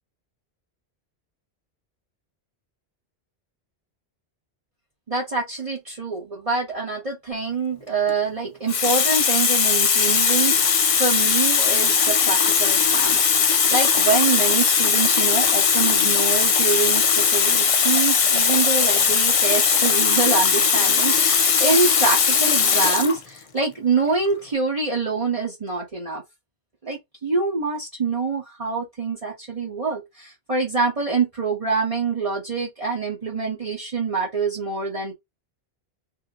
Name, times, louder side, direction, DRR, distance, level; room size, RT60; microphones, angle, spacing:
voice 1, 5.1-26.2 26.8-35.1, right 4 dB, 35° right, 1.1 m, -25 dB
Water tap faucet, 7.9-8.1 8.7-23.2 24.1-24.3, left 6 dB, 45° left, 0.5 m, -19 dB
2.9 x 2.8 x 3.6 m
omnidirectional pair, 1.1 m